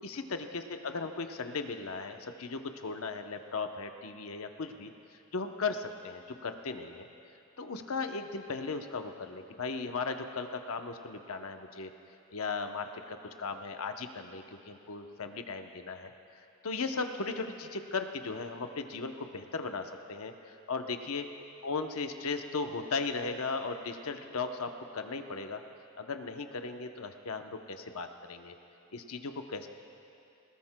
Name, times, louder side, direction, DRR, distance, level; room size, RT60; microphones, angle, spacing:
voice 1, 0.0-4.9 5.3-7.1 7.6-11.9 12.3-16.1 16.6-20.3 20.7-21.3 21.6-25.6 26.0-28.5 28.9-29.7, left 4 dB, 75° left, 6 dB, 0.8 m, -37 dB
22.0 x 19.5 x 2.2 m, 2.7 s
head